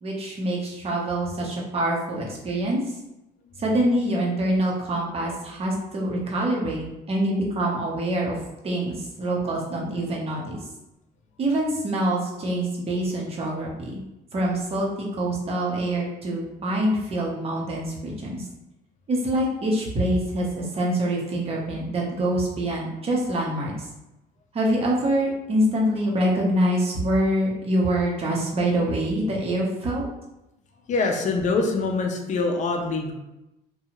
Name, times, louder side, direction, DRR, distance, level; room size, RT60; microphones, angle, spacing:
voice 1, 0.0-2.8 3.6-8.4 8.6-10.6 11.4-14.0 14.3-14.9 15.2-18.4 19.1-23.9 24.5-30.0, right 1 dB, 35° right, -3 dB, 0.8 m, -25 dB
voice 2, 30.9-33.1, left 3 dB, 45° left, 2 dB, 0.5 m, -24 dB
2.7 x 2.3 x 2.9 m, 0.93 s
cardioid pair, 110°, 17 cm